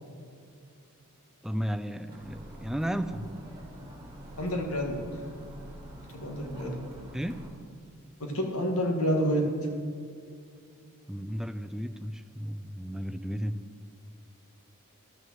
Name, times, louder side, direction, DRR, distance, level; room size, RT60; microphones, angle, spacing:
voice 1, 1.4-3.2 7.1-7.4 11.1-13.5, equal, ahead, 10 dB, 0.4 m, -34 dB
sound 1, 2.1-7.5, right 1 dB, 20° right, 2.5 m, -46 dB
voice 2, 4.4-5.0 6.1-6.7 8.2-9.4, equal, 85° left, 2 dB, 2.0 m, -28 dB
12.5 x 6.3 x 7.4 m, 2.2 s
head